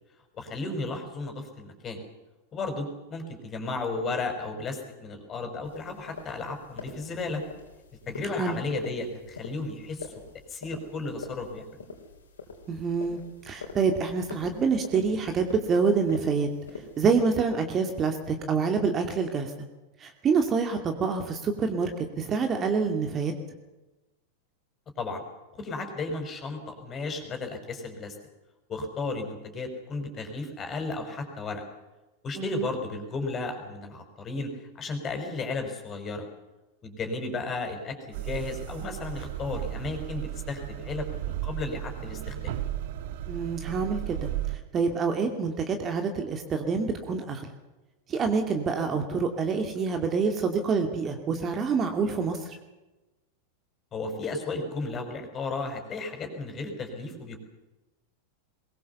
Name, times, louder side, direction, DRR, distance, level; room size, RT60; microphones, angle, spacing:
voice 1, 0.3-2.0 2.5-7.4 8.1-10.1 10.5-11.8 25.0-25.2 25.6-28.2 28.7-31.6 32.2-34.5 34.8-36.3 36.8-42.5 53.9-57.4, left 3 dB, 25° left, 5 dB, 5.5 m, -34 dB
sound 1, 5.6-17.4, left 4 dB, 70° left, 4.5 m, -46 dB
voice 2, 12.7-16.5 17.0-19.5 20.0-23.3 32.4-32.7 43.3-44.3 44.7-47.5 48.1-52.6, right 5 dB, 25° right, 5 dB, 2.6 m, -27 dB
sound 2, 38.1-44.6, right 13 dB, 50° right, 1.5 m, -34 dB
22.5 x 22.0 x 7.0 m, 1.1 s
figure-of-eight pair, 90°, 0 cm